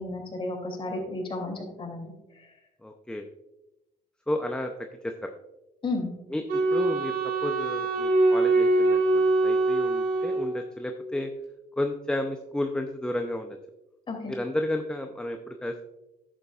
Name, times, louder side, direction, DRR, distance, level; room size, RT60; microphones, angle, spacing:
voice 1, 0.0-2.5 5.8-6.1 14.1-14.3, left 2 dB, 30° left, 1 dB, 2.8 m, -33 dB
voice 2, 2.8-3.3 4.3-4.7 5.0-5.3 6.3-6.4 6.7-11.3 11.8-13.6 14.3-15.8, left 1 dB, 5° left, 5 dB, 0.6 m, -32 dB
Wind instrument woodwind instrument, 6.5-10.9, right 2 dB, 65° right, 2.8 m, -24 dB
11.0 x 8.1 x 2.4 m, 0.96 s
cardioid pair, 110°, 17 cm